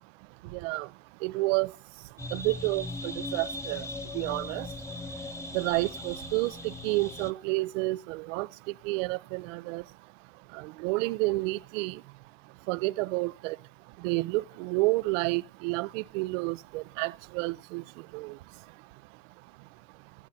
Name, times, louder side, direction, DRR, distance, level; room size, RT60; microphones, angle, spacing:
voice 1, 0.5-0.9 1.2-1.7 2.3-3.8 4.1-4.7 5.5-8.5 8.8-9.8 10.5-12.0 12.7-13.6 14.0-17.8 18.1-18.4, right 23 dB, 75° right, 0.7 m, -30 dB
sound 1, 2.2-7.3, left 2 dB, 5° left, 1.0 m, -39 dB
15.0 x 15.0 x 4.2 m
supercardioid pair, 110°, 38 cm